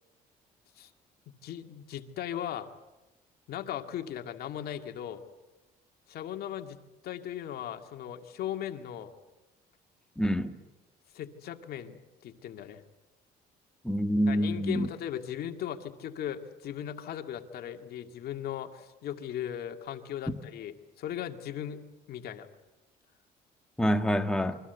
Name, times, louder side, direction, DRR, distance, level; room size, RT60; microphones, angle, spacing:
voice 1, 1.4-2.7 3.5-5.2 6.1-6.8 7.0-9.1 11.1-12.8 14.3-21.8 22.1-22.5, left 10 dB, 65° left, 6 dB, 2.2 m, -38 dB
voice 2, 10.2-10.6 13.8-14.9 20.3-20.4 23.8-24.6, equal, 5° left, 6 dB, 1.7 m, -26 dB
27.5 x 23.5 x 8.2 m, 1.0 s
cardioid pair, 110°, 17 cm